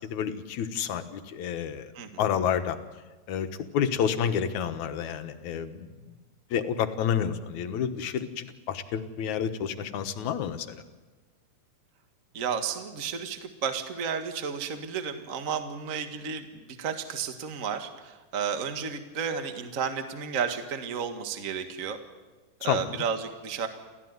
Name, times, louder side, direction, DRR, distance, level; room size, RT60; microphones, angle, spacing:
voice 1, 0.1-1.9 2.2-2.8 3.3-3.5 3.7-6.1 6.5-10.8 22.6-23.0, left 8 dB, 70° left, 8 dB, 2.6 m, -29 dB
voice 2, 12.3-22.0 22.6-23.7, right 6 dB, 35° right, 7 dB, 1.5 m, -32 dB
29.5 x 14.5 x 9.6 m, 1.3 s
omnidirectional pair, 3.6 m